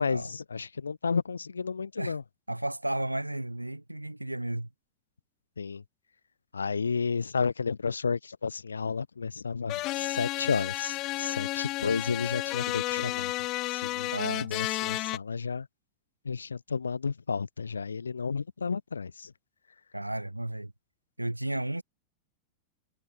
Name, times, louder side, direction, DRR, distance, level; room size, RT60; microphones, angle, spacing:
voice 1, 0.0-2.2 5.6-5.8 6.5-13.3 13.7-14.1 14.4-15.7 16.2-19.3, left 5 dB, 75° left, 4.0 m, -32 dB
voice 2, 2.5-4.7 14.1-14.5 19.9-20.7 21.2-21.8, right 1 dB, 85° right, 8.0 m, -33 dB
sound 1, 9.7-15.2, left 19 dB, 40° left, 2.7 m, -32 dB
figure-of-eight pair, 90°, 0 cm